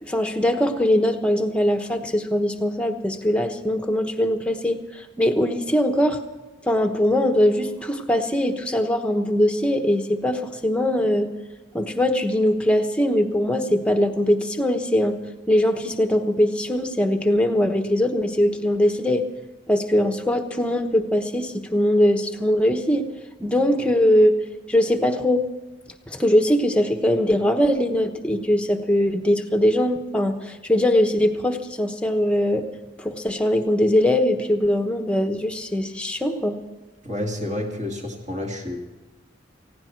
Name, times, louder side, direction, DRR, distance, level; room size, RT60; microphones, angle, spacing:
voice 1, 0.0-6.2 6.7-11.3 11.7-15.2 15.5-19.2 19.7-23.1 23.4-24.4 24.7-25.4 26.1-32.7 33.0-36.5, left 1 dB, 5° left, 5 dB, 1.1 m, -21 dB
voice 2, 37.0-38.8, left 1 dB, 40° right, 1 dB, 2.5 m, -29 dB
18.5 x 16.0 x 4.6 m, 1.2 s
head